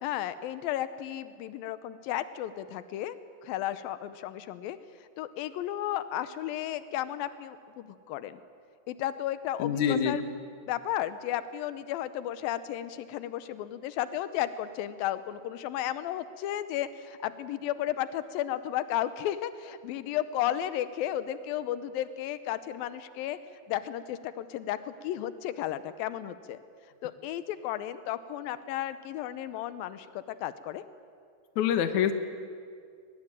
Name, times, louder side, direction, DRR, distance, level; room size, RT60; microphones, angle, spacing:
voice 1, 0.0-3.2 3.4-4.8 5.2-8.4 8.9-10.2 10.7-23.4 23.7-26.6 27.0-30.8, left 12 dB, 90° left, 13 dB, 2.6 m, -33 dB
voice 2, 9.6-10.2 31.6-32.1, left 8 dB, 65° left, 9 dB, 2.5 m, -25 dB
22.5 x 21.5 x 9.0 m, 2.2 s
omnidirectional pair, 4.0 m